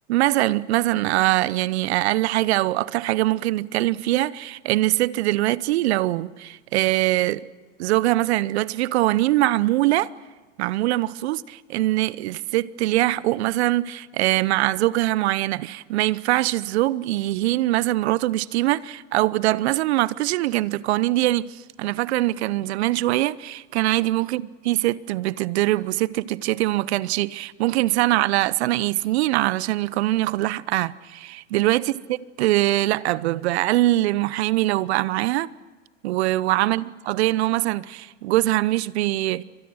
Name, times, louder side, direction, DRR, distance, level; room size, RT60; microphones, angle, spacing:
voice 1, 0.1-7.4 7.8-10.1 10.6-31.9 32.4-35.5 36.0-39.4, right 17 dB, 60° right, 0.9 m, -22 dB
29.5 x 25.0 x 6.4 m
hypercardioid pair, 100°, 37 cm